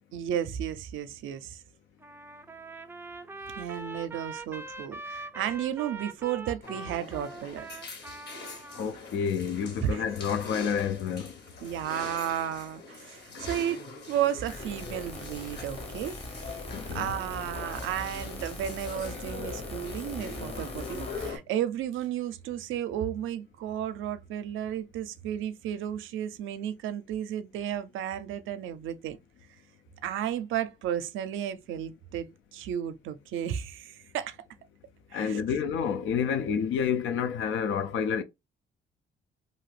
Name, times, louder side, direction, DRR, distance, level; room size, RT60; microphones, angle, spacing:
voice 1, 0.1-1.6 3.6-7.6 9.8-10.0 11.6-13.8 14.1-16.2 16.9-29.2 30.0-34.4 35.1-35.4, right 10 dB, 80° right, 0.5 m, -33 dB
Trumpet, 2.0-8.9, right 3 dB, 10° right, 0.4 m, -42 dB
sound 1, 6.6-21.4, left 3 dB, 55° left, 1.1 m, -43 dB
voice 2, 8.8-11.3 13.3-13.4 16.7-17.1 35.1-38.2, left 7 dB, 80° left, 0.5 m, -29 dB
sound 2, 14.5-21.3, left 2 dB, 30° left, 0.8 m, -41 dB
2.6 x 2.4 x 3.2 m
cardioid pair, 90°, 20 cm